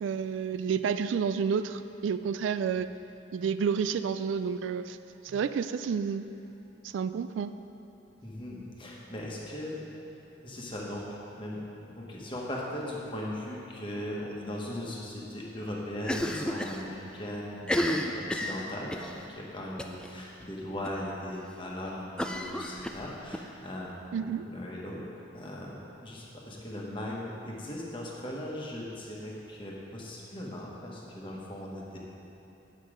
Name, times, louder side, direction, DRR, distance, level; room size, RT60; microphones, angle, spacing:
voice 1, 0.0-2.9 3.3-5.0 5.2-6.2 6.9-7.5 24.1-24.5, right 6 dB, 75° right, 11 dB, 0.3 m, -30 dB
voice 2, 8.2-9.8 10.4-11.0 11.4-25.0 25.3-25.7 26.0-32.0, left 1 dB, 25° left, -3 dB, 1.3 m, -38 dB
Cough, 16.0-16.8 17.1-17.2 17.6-19.1 19.8-20.1 20.4-20.5 20.8-20.9 22.2-23.4, left 1 dB, 5° left, 0.3 m, -31 dB
9.4 x 7.4 x 5.0 m, 3.0 s
head